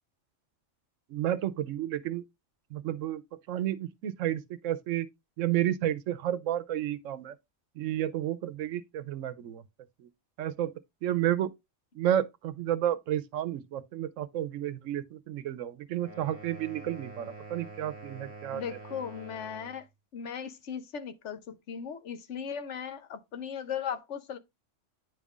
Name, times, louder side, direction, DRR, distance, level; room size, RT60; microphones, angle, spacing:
voice 1, 1.1-2.2 2.7-3.2 3.5-5.1 5.4-7.4 7.8-9.6 10.0-10.1 10.4-10.7 11.0-11.5 11.9-18.6, right 12 dB, 90° right, 1.0 m, -31 dB
sound 1, 15.9-19.8, right 3 dB, 20° left, 3.7 m, -46 dB
voice 2, 18.5-19.9 20.1-24.4, left 7 dB, 70° left, 1.1 m, -37 dB
9.6 x 5.3 x 2.4 m
omnidirectional pair, 1.3 m